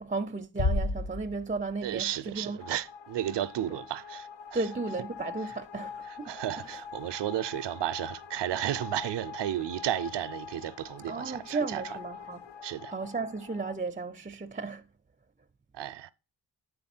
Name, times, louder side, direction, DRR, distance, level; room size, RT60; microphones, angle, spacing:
voice 1, 0.0-2.6 4.5-6.3 11.1-12.4 12.9-14.8, right 3 dB, 20° right, 0.4 m, -34 dB
Bass drum, 0.6-2.0, left 2 dB, 60° left, 0.9 m, -30 dB
voice 2, 1.8-4.7 5.5-5.6 6.0-12.0 12.6-12.9 15.7-16.1, right 12 dB, 80° right, 0.5 m, -33 dB
sound 1, 2.6-13.8, left 7 dB, 85° left, 0.7 m, -44 dB
9.4 x 4.1 x 4.3 m
cardioid pair, 50°, 42 cm